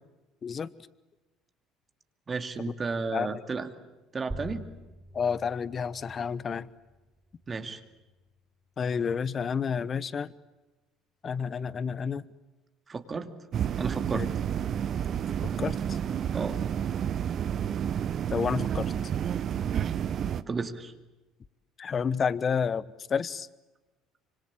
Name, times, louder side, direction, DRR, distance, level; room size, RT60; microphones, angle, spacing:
voice 1, 2.3-3.7 4.1-4.6 7.5-7.8 12.9-13.3 13.8-14.3 16.3-16.6 20.4-20.9, right 4 dB, 30° right, 7 dB, 2.5 m, -33 dB
sound 1, 4.3-9.4, equal, 10° right, 4.8 m, -46 dB
voice 2, 5.1-6.7 8.8-10.3 11.2-12.2 14.1-14.3 15.6-16.0 18.3-18.9 21.8-22.8 23.1-23.5, left 6 dB, 40° left, 18 dB, 1.1 m, -30 dB
sound 2, 13.5-20.4, right 9 dB, 50° right, 1.0 m, -30 dB
25.5 x 25.5 x 8.7 m, 1.1 s
hypercardioid pair, 65°, 0 cm